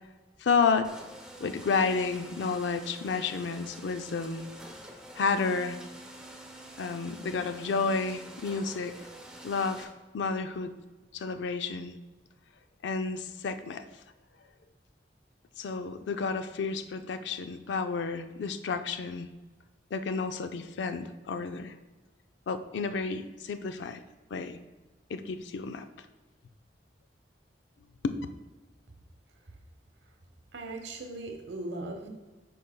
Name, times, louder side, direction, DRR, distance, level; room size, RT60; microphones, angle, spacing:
voice 1, 0.4-1.0 1.4-4.5 5.1-5.8 6.8-8.9 9.4-9.9 10.1-10.7 11.1-11.9 12.8-13.9 15.6-19.3 19.9-21.7 22.5-24.0 24.3-24.6 25.1-25.9 28.0-28.2, left 4 dB, 85° left, 9 dB, 0.4 m, -31 dB
sound 1, 0.8-9.8, right 1 dB, 5° right, 0.6 m, -47 dB
voice 2, 30.5-32.1, right 2 dB, 85° right, 4 dB, 0.9 m, -38 dB
8.5 x 5.3 x 2.2 m, 1.2 s
head